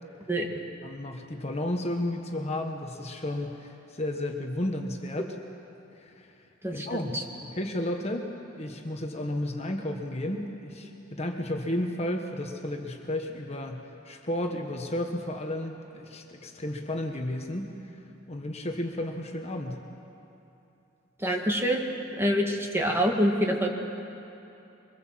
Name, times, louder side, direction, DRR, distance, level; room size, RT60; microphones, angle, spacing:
voice 1, 0.8-5.4 6.0-6.3 6.7-8.3 8.6-17.7 18.3-19.8, left 1 dB, 35° left, 3 dB, 1.4 m, -33 dB
voice 2, 21.2-21.8 22.2-23.7, equal, 10° right, 1 dB, 1.9 m, -25 dB
24.0 x 21.0 x 7.7 m, 2.9 s
head